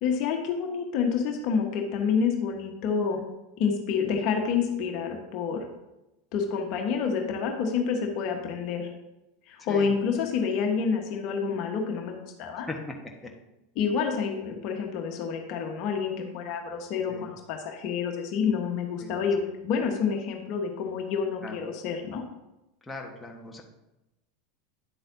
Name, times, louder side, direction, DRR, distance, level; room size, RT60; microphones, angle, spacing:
voice 1, 0.0-3.2 3.6-5.6 6.3-8.9 9.5-12.7 13.7-22.2, left 6 dB, 50° left, 3 dB, 1.4 m, -28 dB
voice 2, 9.6-9.9 12.7-12.8 13.2-13.3 17.1-17.3 19.0-19.2 21.4-21.6 22.9-23.6, left 3 dB, 10° left, 0 dB, 1.4 m, -39 dB
10.0 x 7.8 x 2.8 m, 0.96 s
hypercardioid pair, 85°, 0 cm